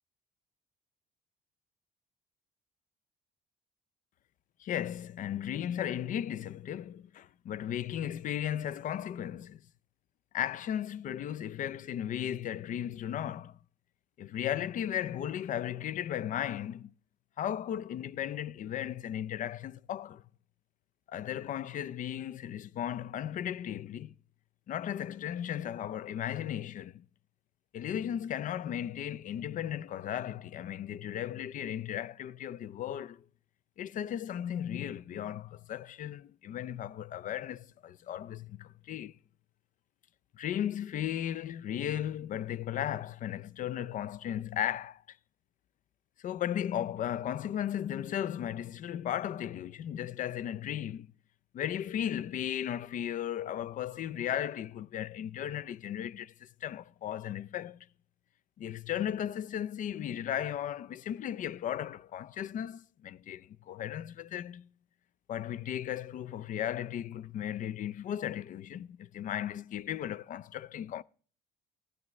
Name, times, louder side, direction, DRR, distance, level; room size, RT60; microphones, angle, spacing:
voice 1, 4.6-9.6 10.3-13.6 14.2-16.9 17.4-20.2 21.1-24.1 24.7-27.0 27.7-33.2 33.8-39.2 40.3-45.2 46.2-51.1 51.5-57.9 58.6-64.7 65.3-71.0, left 10 dB, 50° left, 0.4 m, -36 dB
15.0 x 12.0 x 3.1 m
cardioid pair, 110°, 17 cm